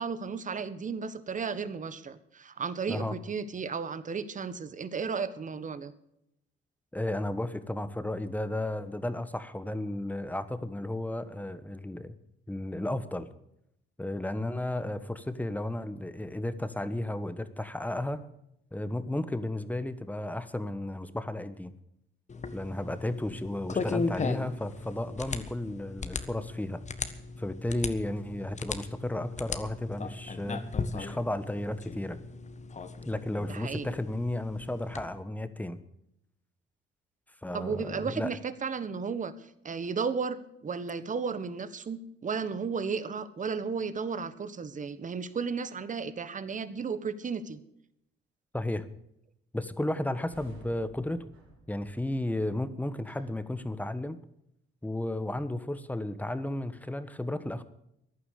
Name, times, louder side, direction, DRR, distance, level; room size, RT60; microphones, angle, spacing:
voice 1, 0.0-5.9 33.5-33.9 37.5-47.6, right 5 dB, 40° right, 13 dB, 1.5 m, -34 dB
voice 2, 6.9-12.1 12.5-13.3 14.0-18.3 18.7-21.7 22.5-26.8 27.4-30.6 30.9-32.2 33.0-35.8 37.4-38.3 48.5-48.9 49.5-51.2 51.7-54.2 54.8-57.6, left 1 dB, 10° left, 12 dB, 1.3 m, -33 dB
sound 1, 22.3-35.1, left 4 dB, 35° left, 1.5 m, -37 dB
sound 2, 50.2-54.1, right 3 dB, 85° right, 5.8 m, -55 dB
15.0 x 11.0 x 6.6 m, 0.78 s
cardioid pair, 90°, 20 cm